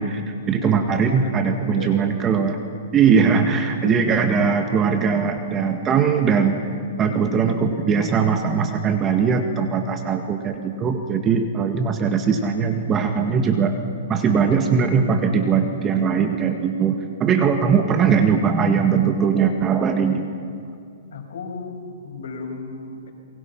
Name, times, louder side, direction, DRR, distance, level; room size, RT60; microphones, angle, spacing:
voice 1, 0.0-2.6 2.9-6.6 7.0-13.8 14.1-20.3, right 6 dB, 20° right, 5 dB, 1.7 m, -20 dB
voice 2, 0.5-2.0 3.7-4.2 21.1-21.8 22.0-23.1, left 4 dB, 70° left, 1 dB, 6.3 m, -35 dB
29.0 x 23.0 x 5.9 m, 2.2 s
hypercardioid pair, 140°, 0 cm